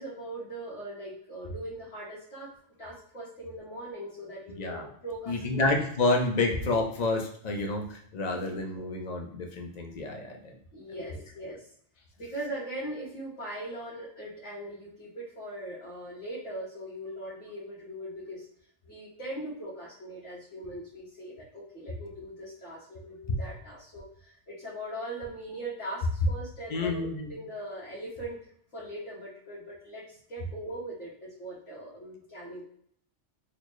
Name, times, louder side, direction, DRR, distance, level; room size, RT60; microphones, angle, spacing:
voice 1, 0.0-2.5 2.8-5.7 6.5-6.6 8.5-8.6 10.7-11.7 12.2-18.5 18.8-27.0 27.3-28.4 28.7-32.6, right 1 dB, 90° left, -9 dB, 1.4 m, -40 dB
voice 2, 5.3-10.5 26.7-27.3, left 2 dB, 50° left, 2 dB, 0.5 m, -29 dB
4.1 x 2.1 x 3.0 m, 0.64 s
omnidirectional pair, 1.2 m